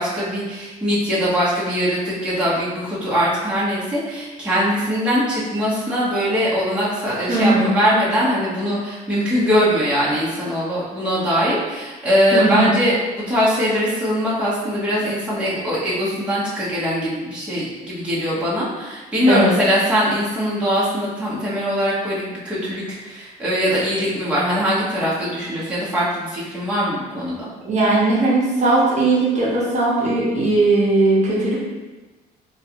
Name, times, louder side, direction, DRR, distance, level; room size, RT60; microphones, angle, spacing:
voice 1, 0.0-27.4, equal, 5° right, -9 dB, 1.0 m, -21 dB
voice 2, 7.3-7.7 12.3-12.7 19.3-19.6 27.6-31.6, right 2 dB, 45° right, -7 dB, 0.9 m, -18 dB
3.1 x 2.4 x 2.9 m, 1.2 s
cardioid pair, 110°, 17 cm